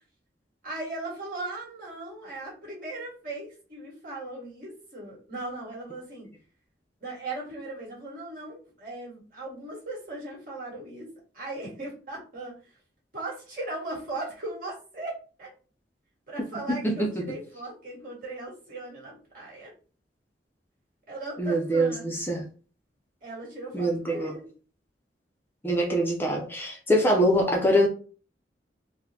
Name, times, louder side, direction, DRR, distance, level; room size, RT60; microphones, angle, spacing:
voice 1, 0.6-6.3 7.0-11.1 11.3-12.6 13.1-15.5 16.3-19.7 21.1-22.1 23.2-24.5, right 2 dB, 50° right, 1.7 m, -38 dB
voice 2, 16.8-17.3 21.4-21.9 22.3-22.4 23.7-24.4 25.6-27.9, equal, 10° left, 0.5 m, -24 dB
4.2 x 2.1 x 2.7 m
head